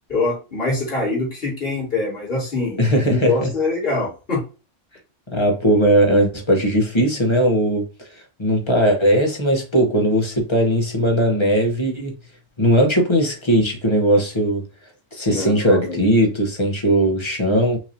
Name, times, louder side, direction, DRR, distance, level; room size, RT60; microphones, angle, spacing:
voice 1, 0.1-4.4 15.3-16.0, left 3 dB, 50° left, 2.9 m, -24 dB
voice 2, 2.8-3.5 5.3-7.9 8.4-12.1 12.6-14.6 15.1-17.8, equal, 25° left, 1.1 m, -18 dB
5.9 x 2.8 x 2.7 m
omnidirectional pair, 1.2 m